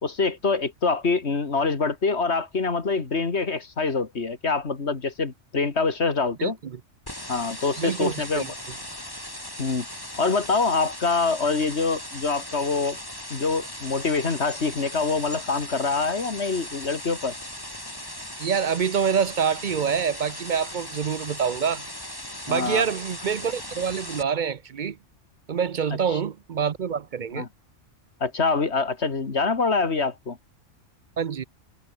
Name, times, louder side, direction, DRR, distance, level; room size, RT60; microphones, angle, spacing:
voice 1, 0.0-6.6 7.3-8.5 9.6-9.9 10.2-13.0 13.3-17.3 22.5-22.9 26.1-26.2 27.3-27.5 28.2-30.4, left 4 dB, 60° left, 2.4 m, -25 dB
voice 2, 6.4-6.8 7.8-8.5 18.4-21.8 22.5-25.0 25.5-27.4 31.2-31.4, right 7 dB, 50° right, 0.7 m, -26 dB
sound 1, 7.1-24.2, left 1 dB, 15° left, 4.2 m, -38 dB
omnidirectional pair, 1.3 m